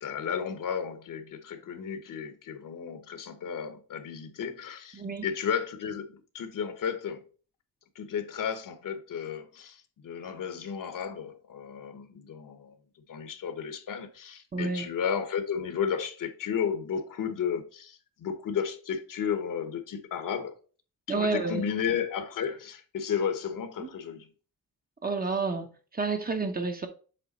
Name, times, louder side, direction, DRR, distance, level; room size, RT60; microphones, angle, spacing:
voice 1, 0.0-7.2 7.9-12.7 13.1-20.5 21.1-24.3, left 7 dB, 60° left, 1.0 m, -33 dB
voice 2, 4.9-5.3 14.5-14.9 21.1-21.6 23.8-23.9 25.0-25.7 25.9-26.9, right 4 dB, 25° right, 0.8 m, -29 dB
7.7 x 3.4 x 4.1 m
cardioid pair, 120°, 37 cm